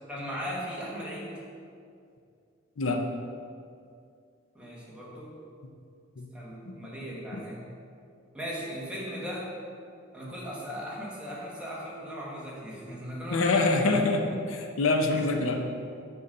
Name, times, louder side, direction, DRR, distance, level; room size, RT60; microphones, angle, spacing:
voice 1, 0.1-1.3 4.5-5.4 6.3-7.6 8.3-9.5 10.1-14.0 15.1-15.3, equal, 5° right, -6 dB, 1.3 m, -37 dB
voice 2, 13.3-15.6, left 3 dB, 90° left, 4 dB, 0.6 m, -25 dB
6.8 x 4.0 x 6.4 m, 2.4 s
head